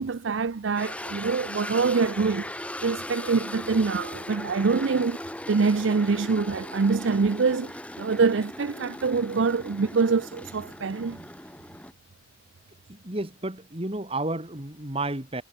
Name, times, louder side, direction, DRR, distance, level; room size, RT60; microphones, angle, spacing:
voice 1, 0.0-2.5 2.8-5.2 5.5-7.7 8.0-11.2, right 4 dB, 80° right, 0.6 m, -25 dB
sound 1, 0.7-11.9, left 1 dB, 5° left, 3.6 m, -38 dB
voice 2, 12.9-15.4, right 2 dB, 30° right, 2.4 m, -31 dB
head